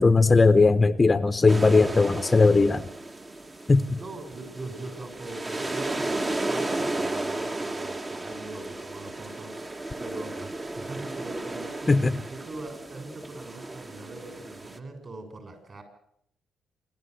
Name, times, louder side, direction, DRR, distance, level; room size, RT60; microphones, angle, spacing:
voice 1, 0.0-2.8 3.7-3.8 11.9-12.0, left 3 dB, 25° left, 12 dB, 0.9 m, -18 dB
sound 1, 1.5-14.8, right 2 dB, 25° right, 1.4 m, -34 dB
voice 2, 3.9-15.8, right 2 dB, 40° right, 7 dB, 7.3 m, -41 dB
27.5 x 12.5 x 8.2 m, 0.71 s
cardioid pair, 90°, 0 cm